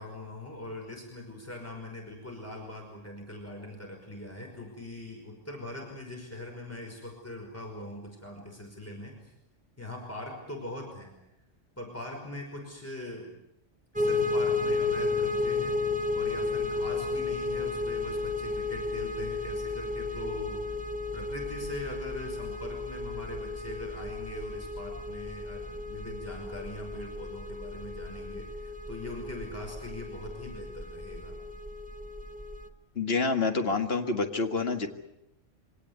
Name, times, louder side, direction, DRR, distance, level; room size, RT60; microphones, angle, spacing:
voice 1, 0.0-9.3 9.8-11.2 11.8-13.3 14.0-15.8 16.1-20.8 21.1-31.4, left 1 dB, 10° left, 1 dB, 5.4 m, -42 dB
sound 1, 14.0-32.7, left 3 dB, 5° right, 1.0 m, -33 dB
voice 2, 33.0-34.9, left 3 dB, 55° left, 6 dB, 2.2 m, -27 dB
24.5 x 18.5 x 9.7 m, 0.85 s
omnidirectional pair, 1.3 m